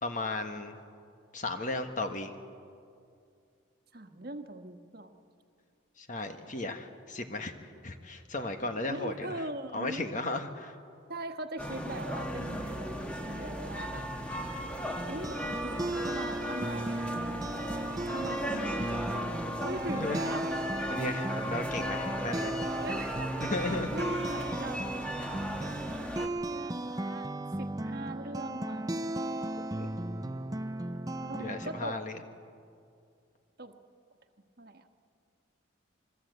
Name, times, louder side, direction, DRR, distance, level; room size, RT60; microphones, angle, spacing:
voice 1, 0.0-0.8 1.3-2.3 6.0-9.4 9.7-10.8 19.9-20.2 20.9-22.5 23.4-23.9 29.6-29.9 31.4-32.2, left 2 dB, 40° left, 6 dB, 1.4 m, -35 dB
voice 2, 3.9-5.1 8.9-10.2 11.1-14.1 15.1-17.4 18.0-20.4 22.8-23.4 23.9-24.8 26.4-27.3 27.6-29.0 31.2-32.0 33.6-33.7 34.6-34.9, right 1 dB, 50° right, 6 dB, 1.4 m, -41 dB
sound 1, 11.6-26.3, equal, 5° left, 1.6 m, -36 dB
sound 2, 15.0-31.9, right 1 dB, 20° right, 0.5 m, -36 dB
25.5 x 23.0 x 8.1 m, 2.4 s
head